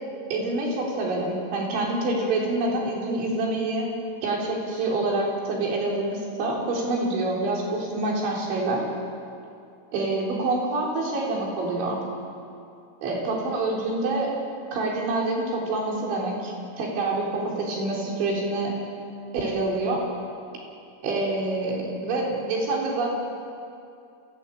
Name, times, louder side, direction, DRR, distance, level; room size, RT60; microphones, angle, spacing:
voice 1, 0.3-3.9 4.2-8.8 9.9-12.0 13.0-14.3 14.7-18.7 19.3-20.0 21.0-23.1, right 2 dB, 75° right, -2 dB, 6.4 m, -26 dB
29.0 x 16.5 x 8.7 m, 2.5 s
omnidirectional pair, 5.4 m